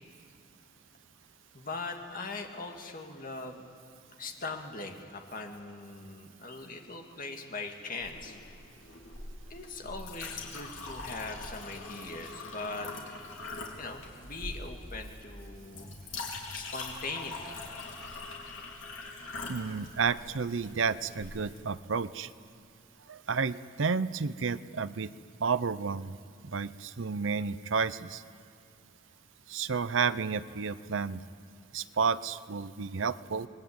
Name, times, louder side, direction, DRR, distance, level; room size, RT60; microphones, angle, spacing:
voice 1, 1.5-3.6 4.2-8.4 9.5-12.9 13.8-15.9 16.5-17.6, left 3 dB, 45° left, 3 dB, 2.2 m, -40 dB
Chink clink, 8.0-21.6, left 3 dB, 90° left, 3.6 m, -43 dB
voice 2, 19.5-22.3 23.1-25.1 25.4-26.2 26.4-28.2 29.5-31.2 31.7-33.5, right 5 dB, 75° right, 15 dB, 0.7 m, -31 dB
26.0 x 20.5 x 8.8 m, 2.2 s
head